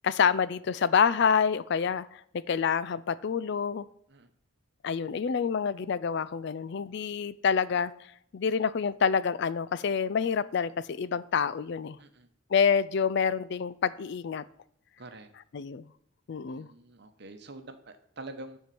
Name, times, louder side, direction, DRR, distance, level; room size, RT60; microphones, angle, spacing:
voice 1, 0.0-3.9 4.8-7.9 8.3-12.0 12.5-14.4 15.5-15.9 16.3-16.7, left 6 dB, 55° left, 17 dB, 0.4 m, -27 dB
voice 2, 15.0-15.3 16.5-18.6, right 2 dB, 55° right, 8 dB, 1.0 m, -46 dB
10.5 x 4.5 x 6.9 m, 0.67 s
head